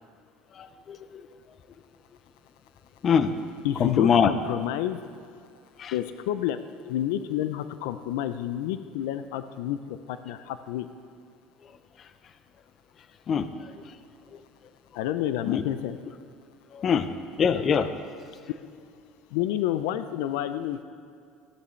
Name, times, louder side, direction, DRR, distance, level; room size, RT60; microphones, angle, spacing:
voice 1, 0.6-1.2 3.0-3.3 3.8-4.3 5.8-5.9 13.3-13.5 15.5-15.6 16.7-17.1 17.4-17.9, left 7 dB, 40° left, 11 dB, 0.6 m, -23 dB
voice 2, 3.6-5.0 5.9-9.8 10.1-10.9 14.9-16.0 19.3-20.8, left 12 dB, 85° left, 11 dB, 0.4 m, -29 dB
14.0 x 9.7 x 3.2 m, 2.4 s
supercardioid pair, 115°, 0 cm